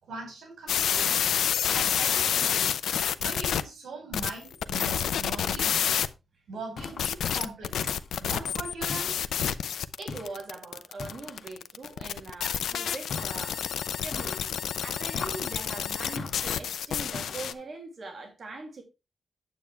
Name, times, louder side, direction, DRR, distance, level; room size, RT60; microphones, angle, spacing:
voice 1, 0.0-1.2 1.7-2.7 3.2-5.8 6.5-7.9 8.2-9.1, right 3 dB, 80° right, 5.3 m, -40 dB
sound 1, 0.7-3.6 4.1-6.1 6.8-17.5, left 9 dB, 90° left, 0.6 m, -28 dB
sound 2, 6.8-7.2 7.8-8.3 8.9-9.5 10.1-10.5 11.0-11.6 13.1-13.6 14.1-14.6 15.1-15.6 16.2-16.6 17.1-17.6, left 4 dB, 55° left, 2.5 m, -40 dB
voice 2, 10.0-13.6 14.0-14.6 14.8-18.8, right 3 dB, 40° right, 2.4 m, -41 dB
9.2 x 8.2 x 3.4 m
wide cardioid pair, 160°, 0 cm